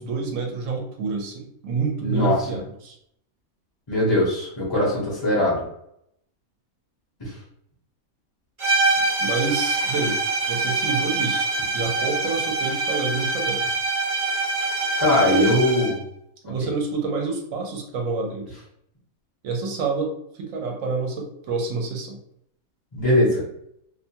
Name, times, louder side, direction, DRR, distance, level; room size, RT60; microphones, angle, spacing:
voice 1, 0.0-2.9 9.2-10.2 10.5-11.5 11.7-13.6 15.2-15.6 16.4-18.5 19.4-20.1 20.4-22.2, right 4 dB, 70° right, 1 dB, 1.0 m, -27 dB
voice 2, 2.0-2.5 3.9-5.6 7.2-7.3 15.0-16.0 16.6-16.7 22.9-23.4, left 1 dB, 25° left, -6 dB, 0.7 m, -21 dB
sound 1, 8.6-16.0, right 3 dB, 40° right, 0.4 m, -24 dB
2.6 x 2.2 x 2.7 m, 0.72 s
omnidirectional pair, 1.5 m